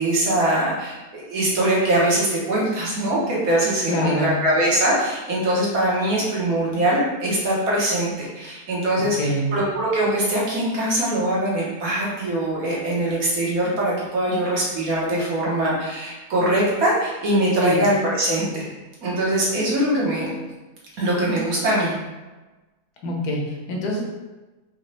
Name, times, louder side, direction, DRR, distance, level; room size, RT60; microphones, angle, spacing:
voice 1, 0.0-18.7 19.0-20.3 21.0-22.0, right 1 dB, 60° right, -6 dB, 1.6 m, -22 dB
voice 2, 3.9-4.3 9.0-9.5 17.6-17.8 23.0-24.1, left 1 dB, 80° left, 0 dB, 1.4 m, -25 dB
4.9 x 2.8 x 3.3 m, 1.2 s
omnidirectional pair, 1.7 m